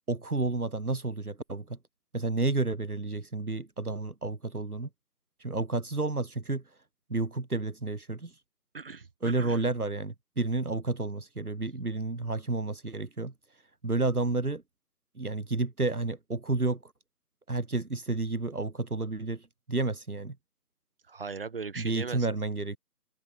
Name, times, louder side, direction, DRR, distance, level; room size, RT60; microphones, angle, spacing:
voice 1, 0.1-1.8 2.1-4.9 5.4-6.6 7.1-8.3 9.2-13.3 13.8-14.6 15.2-16.9 17.5-20.4 21.8-22.8, right 3 dB, 60° right, 4.0 m, -31 dB
voice 2, 8.7-9.6 21.1-22.4, right 5 dB, 35° right, 5.2 m, -39 dB
figure-of-eight pair, 160°, 49 cm